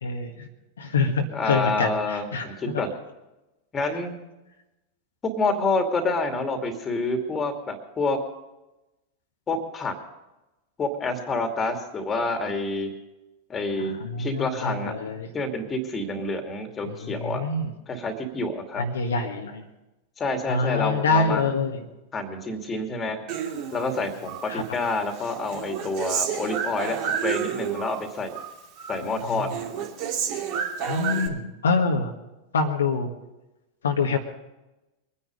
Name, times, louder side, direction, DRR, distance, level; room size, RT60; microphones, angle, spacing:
voice 1, 0.0-0.5 0.8-2.8 13.8-15.3 16.8-17.7 18.8-19.6 20.5-21.8 24.5-24.6 29.1-29.5 30.9-32.1 32.5-33.1 33.8-34.2, left 4 dB, 70° left, 3 dB, 1.6 m, -26 dB
voice 2, 1.3-2.9 3.7-4.2 5.4-8.2 9.5-9.9 10.8-12.9 13.5-15.0 15.3-17.4 17.9-18.8 20.2-21.5 22.1-23.2 23.7-28.4 28.9-29.5, left 2 dB, 20° left, 6 dB, 2.6 m, -28 dB
Human voice, 23.3-24.5 24.8-28.0 28.3-29.0 29.3-31.3, right 8 dB, 45° right, 2.6 m, -30 dB
23.5 x 10.0 x 5.2 m, 0.99 s
figure-of-eight pair, 90°, 0 cm